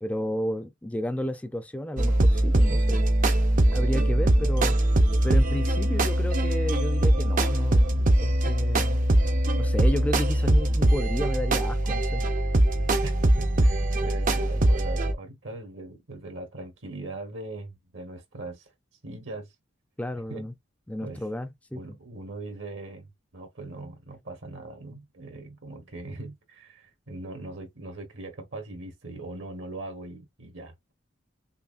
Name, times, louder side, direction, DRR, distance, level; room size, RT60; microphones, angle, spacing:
voice 1, 0.0-3.0 3.7-4.8 5.2-9.1 9.6-12.2 20.0-20.5 20.9-22.0, equal, 5° left, 0.4 m, -32 dB
sound 1, 2.0-15.1, right 1 dB, 40° right, 0.6 m, -22 dB
voice 2, 13.4-18.7 19.0-19.5 20.3-20.5 21.0-21.2 21.7-30.9, right 2 dB, 65° right, 1.2 m, -40 dB
5.5 x 2.1 x 2.5 m
head